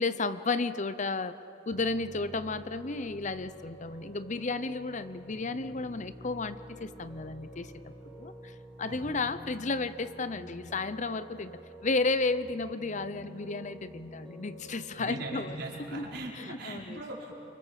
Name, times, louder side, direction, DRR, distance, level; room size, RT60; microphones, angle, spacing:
voice 1, 0.0-1.4 1.7-11.5 11.8-15.6 15.9-16.1 16.4-17.0, left 3 dB, 40° left, 13 dB, 0.8 m, -33 dB
Piano, 1.7-16.1, equal, ahead, 5.6 m, -48 dB
voice 2, 15.0-17.3, right 2 dB, 60° right, -3 dB, 5.2 m, -40 dB
29.5 x 25.0 x 7.6 m, 2.8 s
head